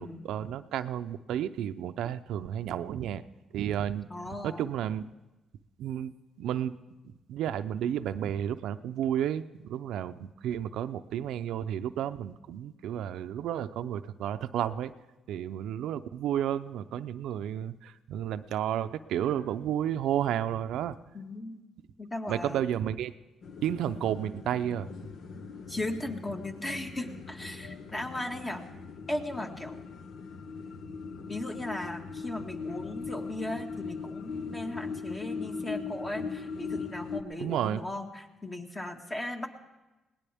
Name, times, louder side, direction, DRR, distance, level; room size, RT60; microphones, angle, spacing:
voice 1, 0.0-3.2 3.5-5.1 5.8-6.8 7.3-14.9 15.3-21.0 22.3-23.1 23.6-25.1 37.4-37.8, right 10 dB, 80° right, 10 dB, 0.6 m, -32 dB
voice 2, 4.1-4.7 21.1-21.6 22.0-22.6 25.7-28.7 29.1-29.8 31.3-39.5, left 1 dB, 25° left, 3 dB, 1.9 m, -37 dB
sound 1, 23.4-37.2, left 5 dB, 70° left, 1.2 m, -40 dB
21.0 x 18.5 x 3.5 m, 1.1 s
cardioid pair, 90°, 0 cm